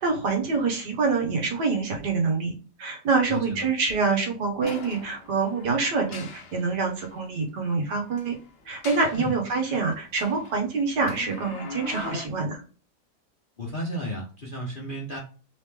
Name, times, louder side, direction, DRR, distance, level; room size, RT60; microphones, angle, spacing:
voice 1, 0.0-8.4 8.7-12.6, right 4 dB, 75° right, 2 dB, 1.8 m, -26 dB
voice 2, 3.3-3.7 9.1-9.4 13.6-15.2, equal, 40° left, -3 dB, 0.9 m, -33 dB
sound 1, 4.6-7.1 8.1-9.4 9.9-12.3, left 4 dB, 65° left, 0.6 m, -41 dB
3.8 x 3.3 x 3.4 m, 0.38 s
omnidirectional pair, 1.8 m